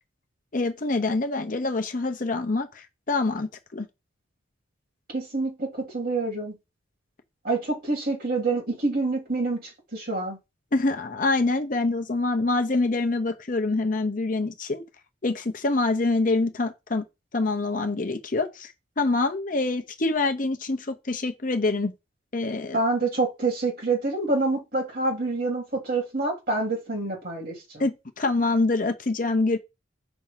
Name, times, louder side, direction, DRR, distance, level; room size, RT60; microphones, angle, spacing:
voice 1, 0.5-3.9 10.7-14.8 15.2-17.0 17.3-21.9 22.3-22.8 27.8-29.6, left 3 dB, 45° left, 0.8 m, -25 dB
voice 2, 5.1-6.6 7.4-10.4 22.7-27.8, right 3 dB, 50° right, 2.6 m, -27 dB
6.0 x 2.8 x 5.6 m
head